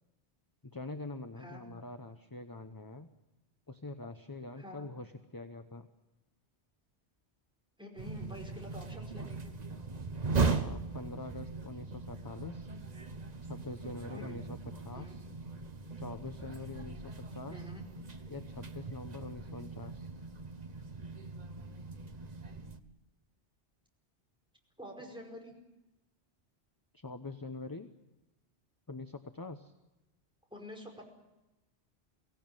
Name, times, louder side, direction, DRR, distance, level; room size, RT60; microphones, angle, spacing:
voice 1, 0.6-3.1 3.7-5.9 10.4-12.7 13.4-14.6 14.8-15.3 16.0-17.7 18.3-20.1 25.0-25.1 26.9-27.9 28.9-29.7, left 2 dB, 20° left, 7 dB, 0.9 m, -44 dB
voice 2, 4.6-4.9 7.8-9.5 14.1-14.4 14.9-15.1 17.5-17.8 24.8-25.5 30.5-31.0, left 1 dB, 5° right, 0 dB, 5.2 m, -47 dB
sound 1, 8.0-22.8, right 4 dB, 40° right, 1.2 m, -39 dB
24.0 x 16.5 x 9.0 m, 0.99 s
omnidirectional pair, 1.1 m